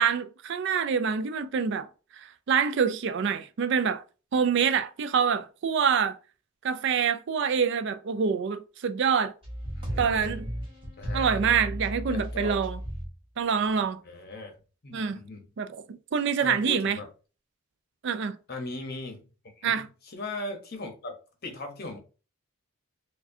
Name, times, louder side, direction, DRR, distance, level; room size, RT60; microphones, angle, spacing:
voice 1, 0.0-1.9 2.2-4.0 4.3-6.1 6.6-9.3 10.0-10.5 11.1-12.8 13.4-14.0 14.9-15.2 15.6-17.0 18.0-18.4 19.6-19.9, right 6 dB, 55° right, 0.4 m, -26 dB
sound 1, 9.4-13.1 13.7-13.8, equal, 25° right, 1.2 m, -35 dB
voice 2, 9.8-10.2 11.0-11.4 12.1-12.6 14.0-14.6 14.8-15.5 16.4-17.1 18.5-19.3 19.6-21.1 21.4-22.0, left 2 dB, 50° left, 0.9 m, -38 dB
4.7 x 2.3 x 2.7 m
head